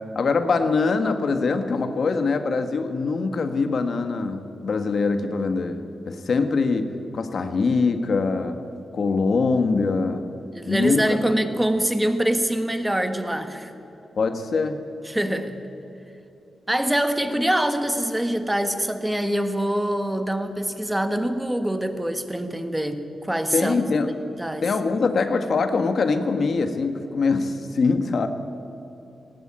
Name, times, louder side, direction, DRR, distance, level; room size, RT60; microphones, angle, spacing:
voice 1, 0.0-8.6 8.9-10.3 10.7-11.0 14.2-14.8 23.5-24.1 24.6-28.3, left 4 dB, 55° left, 8 dB, 1.5 m, -23 dB
voice 2, 10.5-13.7 15.1-15.6 16.7-23.7 24.4-24.7, right 1 dB, 5° right, 8 dB, 1.6 m, -24 dB
19.5 x 18.0 x 8.8 m, 2.9 s
wide cardioid pair, 130°, 0 cm